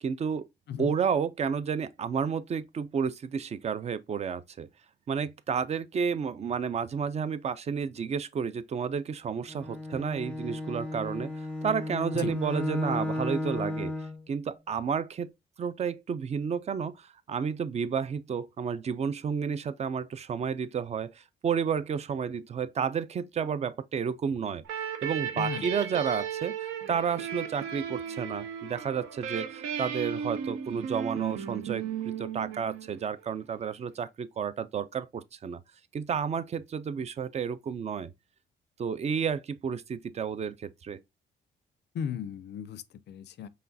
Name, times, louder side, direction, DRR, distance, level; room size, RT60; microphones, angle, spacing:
voice 1, 0.0-0.5 0.8-4.7 5.1-13.9 14.3-15.3 15.6-24.6 25.0-26.5 26.9-35.6 35.9-38.1 38.8-41.0, right 6 dB, 35° right, 0.4 m, -31 dB
Bowed string instrument, 9.5-14.2, left 1 dB, 5° left, 0.6 m, -34 dB
sound 1, 24.6-33.1, right 8 dB, 90° right, 0.6 m, -35 dB
voice 2, 25.4-25.8 41.9-43.5, left 8 dB, 60° left, 0.4 m, -36 dB
4.8 x 3.2 x 2.6 m
cardioid pair, 90°, 20 cm